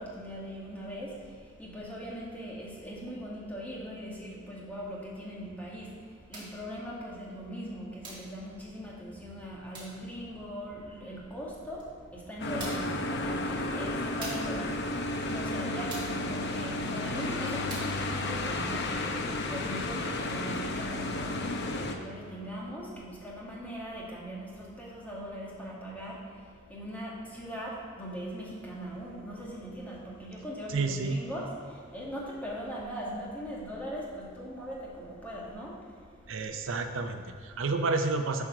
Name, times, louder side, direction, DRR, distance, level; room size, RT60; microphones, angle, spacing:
voice 1, 0.0-36.8 37.5-37.6, equal, 10° left, -5 dB, 1.6 m, -40 dB
sound 1, 6.3-6.6 8.0-8.3 9.7-10.0 11.8-11.9 12.6-13.0 14.2-14.6 15.9-16.2 17.7-18.0, right 2 dB, 25° right, 2.0 m, -42 dB
sound 2, 12.4-21.9, left 2 dB, 55° left, 0.7 m, -32 dB
voice 2, 30.7-31.2 36.3-38.4, right 3 dB, 65° right, 6 dB, 0.5 m, -30 dB
8.9 x 4.5 x 6.1 m, 2.4 s
head